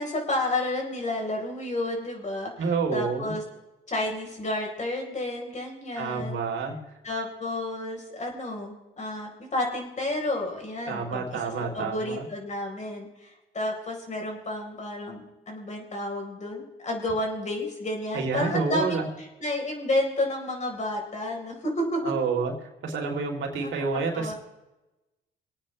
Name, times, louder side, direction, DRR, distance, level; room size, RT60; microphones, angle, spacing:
voice 1, 0.0-3.4 3.9-6.4 7.0-22.2 23.6-23.7 24.1-24.3, left 1 dB, 35° left, 1 dB, 4.1 m, -31 dB
voice 2, 2.6-3.3 6.0-6.8 10.9-12.3 18.1-19.1 22.0-22.5 22.8-24.3, right 4 dB, 75° right, 0 dB, 3.3 m, -28 dB
25.5 x 9.0 x 3.2 m, 1.0 s
cardioid pair, 90°, 20 cm